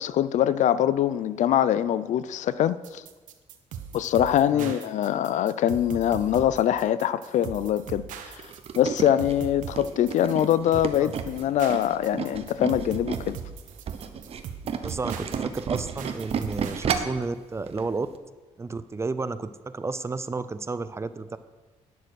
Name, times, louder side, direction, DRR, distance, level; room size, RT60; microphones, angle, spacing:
voice 1, 0.0-3.0 3.9-8.5 8.7-13.4, left 11 dB, 70° left, 0.4 m, -23 dB
sound 1, 2.8-16.8, right 8 dB, 80° right, 0.9 m, -40 dB
Tools, 8.4-13.4 13.7-17.2 17.7-17.8 18.1-18.2, right 7 dB, 50° right, 0.8 m, -31 dB
voice 2, 14.8-18.1 18.6-21.4, right 3 dB, 20° right, 0.5 m, -32 dB
10.0 x 6.6 x 6.3 m
cardioid pair, 110°, 13 cm